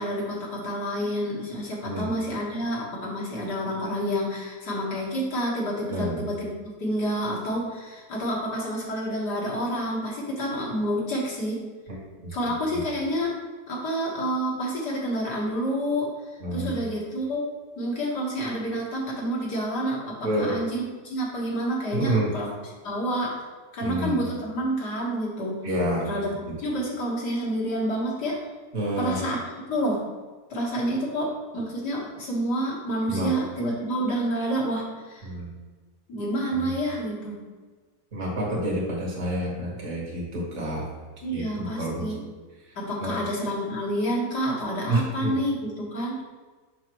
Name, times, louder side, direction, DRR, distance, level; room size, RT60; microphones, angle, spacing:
voice 1, 0.0-6.5 6.8-11.6 12.3-13.3 13.7-16.1 16.5-17.5 17.8-22.5 22.8-23.4 23.7-25.6 26.1-28.4 29.0-29.4 29.7-30.0 30.5-35.3 36.1-37.3 41.2-42.2 42.8-46.4, equal, 70° left, -4 dB, 2.2 m, -28 dB
voice 2, 5.9-6.2 11.9-12.0 12.2-12.4 12.7-12.8 16.4-16.7 20.2-20.6 21.9-22.3 23.8-24.2 25.6-26.1 26.5-26.6 28.7-29.2 33.1-33.3 35.2-35.5 36.5-36.7 38.1-40.9 41.3-42.1 42.6-42.7 43.0-43.2 44.9-45.4, right 1 dB, 45° right, -4 dB, 2.1 m, -28 dB
7.6 x 5.8 x 3.1 m, 1.4 s
omnidirectional pair, 1.8 m